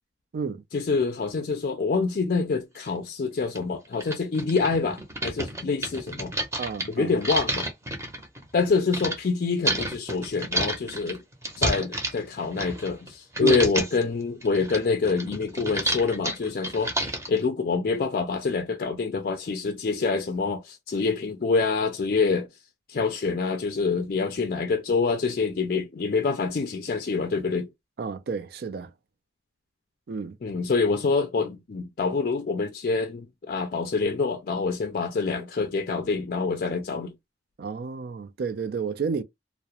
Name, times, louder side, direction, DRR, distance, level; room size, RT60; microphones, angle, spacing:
voice 1, 0.7-6.3 6.9-7.7 8.5-11.2 11.6-16.9 17.3-22.5 22.9-27.7 30.4-37.1, left 4 dB, 55° left, 0.4 m, -26 dB
sound 1, 2.9-3.0 3.6-3.7 3.9-9.2 9.6-13.1 13.3-14.0 14.4-17.4, right 1 dB, 15° right, 0.7 m, -30 dB
voice 2, 6.6-7.1 13.4-13.6 28.0-28.9 30.1-30.4 37.6-39.2, right 5 dB, 60° right, 0.4 m, -30 dB
2.4 x 2.0 x 2.8 m
head